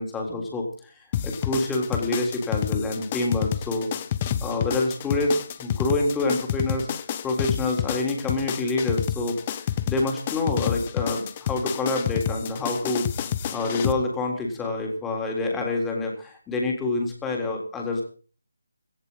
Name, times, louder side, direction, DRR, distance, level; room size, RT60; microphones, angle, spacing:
voice 1, 0.0-3.9 4.4-6.9 7.2-13.0 13.5-18.0, left 2 dB, 5° left, 1 dB, 3.6 m, -27 dB
sound 1, 1.1-13.9, left 10 dB, 25° left, 1.1 m, -29 dB
18.0 x 15.0 x 4.1 m, 0.40 s
figure-of-eight pair, 155°, 0 cm